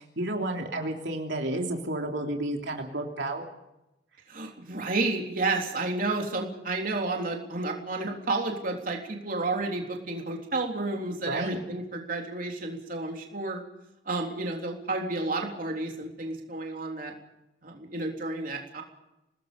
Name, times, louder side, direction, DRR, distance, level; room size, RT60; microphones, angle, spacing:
voice 1, 0.0-3.5 11.2-11.6, right 1 dB, 75° right, 1 dB, 3.3 m, -31 dB
voice 2, 4.3-13.6 14.1-17.1 17.6-18.8, right 2 dB, 50° right, 1 dB, 3.7 m, -31 dB
29.0 x 20.0 x 5.3 m, 0.90 s
head